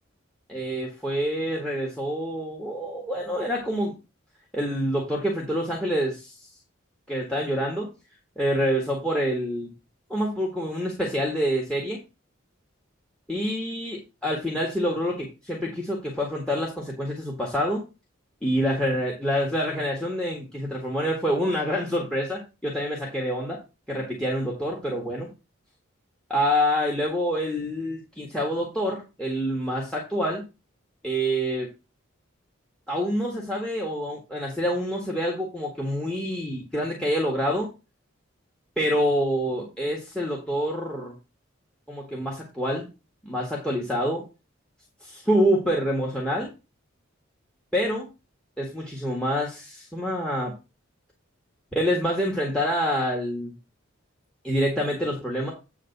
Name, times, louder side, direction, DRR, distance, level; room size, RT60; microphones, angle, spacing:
voice 1, 0.5-3.9 4.5-6.5 7.1-7.9 8.4-9.7 10.1-12.0 13.3-17.8 18.4-23.6 23.9-25.3 26.3-30.4 31.0-31.7 32.9-37.7 38.8-41.1 41.9-42.9 43.2-44.2 45.0-46.5 47.7-48.1 48.6-50.5 51.7-53.5 54.4-55.5, equal, 5° left, -2 dB, 1.7 m, -27 dB
8.8 x 3.5 x 6.7 m, 0.28 s
head